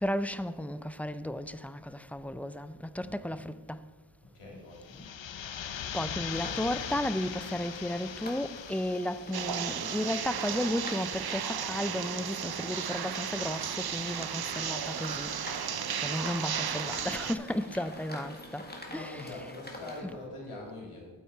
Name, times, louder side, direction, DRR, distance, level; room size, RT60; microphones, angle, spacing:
voice 1, 0.0-3.8 5.9-15.3 16.0-18.6 18.9-19.1, left 1 dB, 5° left, 0.4 m, -34 dB
voice 2, 3.0-3.6 4.2-5.1 18.9-21.1, left 2 dB, 90° left, 3.0 m, -44 dB
sound 1, 4.7-10.4, left 9 dB, 65° left, 0.6 m, -40 dB
sound 2, 6.3-20.0, left 1 dB, 20° left, 1.9 m, -46 dB
sound 3, 9.3-17.4, right 8 dB, 50° right, 0.6 m, -34 dB
8.8 x 8.4 x 4.4 m
cardioid pair, 45°, 49 cm